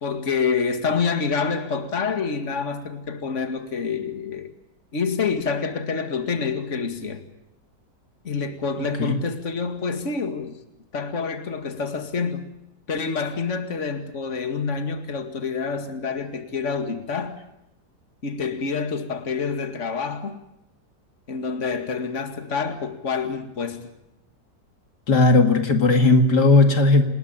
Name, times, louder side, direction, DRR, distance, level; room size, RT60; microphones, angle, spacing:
voice 1, 0.0-4.5 4.9-7.2 8.2-10.6 10.9-12.5 12.9-17.4 18.2-20.4 21.3-23.9, left 5 dB, 45° left, 7 dB, 2.5 m, -27 dB
voice 2, 25.1-27.0, left 3 dB, 70° left, 6 dB, 2.6 m, -16 dB
28.0 x 20.0 x 9.0 m, 0.85 s
omnidirectional pair, 1.9 m